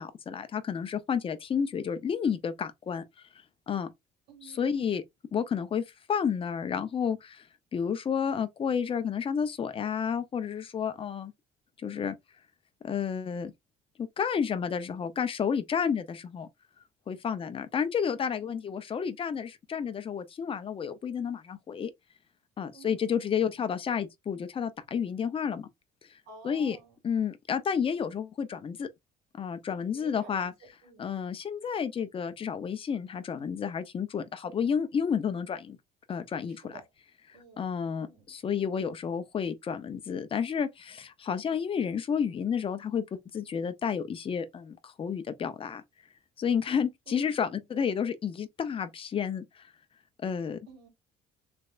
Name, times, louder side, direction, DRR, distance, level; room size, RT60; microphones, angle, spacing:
voice 1, 0.0-3.0 3.7-3.9 4.4-5.0 5.3-5.8 6.1-7.5 7.7-11.3 11.8-12.1 12.8-13.5 14.0-16.5 17.1-21.9 22.6-25.7 26.1-26.2 26.4-26.8 27.0-28.9 29.3-30.5 31.0-35.8 36.1-36.8 37.6-45.8 46.4-49.7 50.2-50.6, left 7 dB, 35° left, 0.6 m, -31 dB
voice 2, 4.3-4.7 18.4-18.6 22.7-23.6 26.3-27.0 29.9-31.1 36.5-36.8 37.3-38.3 47.1-47.6 50.7-50.9, right 4 dB, 85° right, 2.2 m, -52 dB
3.3 x 3.2 x 2.4 m
cardioid pair, 110°, 17 cm